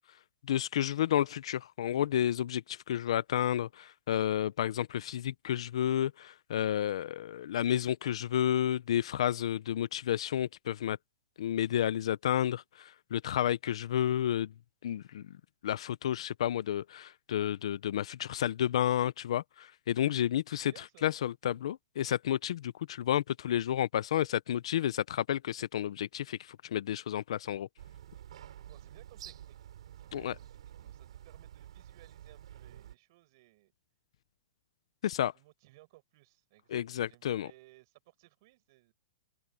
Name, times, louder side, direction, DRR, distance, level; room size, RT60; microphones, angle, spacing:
voice 1, 0.5-11.0 11.4-14.5 14.8-15.3 15.6-20.7 21.0-27.7 30.1-30.3 35.0-35.3 36.7-37.5, left 11 dB, 60° left, 0.6 m, -31 dB
voice 2, 20.5-21.1 28.7-29.6 30.0-33.7 35.3-38.9, right 20 dB, 35° right, 7.1 m, -61 dB
sound 1, 27.8-33.0, right 11 dB, 65° right, 8.0 m, -50 dB
hypercardioid pair, 175°, 4 cm